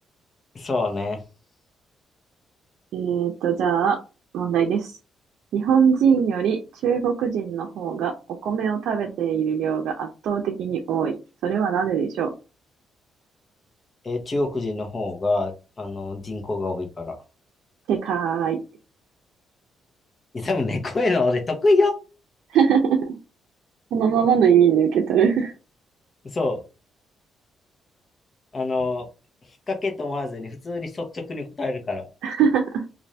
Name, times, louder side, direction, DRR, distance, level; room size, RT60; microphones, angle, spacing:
voice 1, 0.5-1.2 14.0-15.5 15.8-17.2 20.3-21.9 26.2-26.6 28.5-29.1 29.7-32.1, left 3 dB, 35° left, 3 dB, 0.9 m, -25 dB
voice 2, 2.9-4.0 4.3-5.0 5.5-8.1 8.4-11.2 11.4-12.3 17.9-18.6 22.5-23.2 23.9-25.5 32.2-32.8, right 7 dB, 80° right, 2 dB, 0.5 m, -21 dB
2.6 x 2.5 x 3.2 m, 0.32 s
cardioid pair, 90°, 0 cm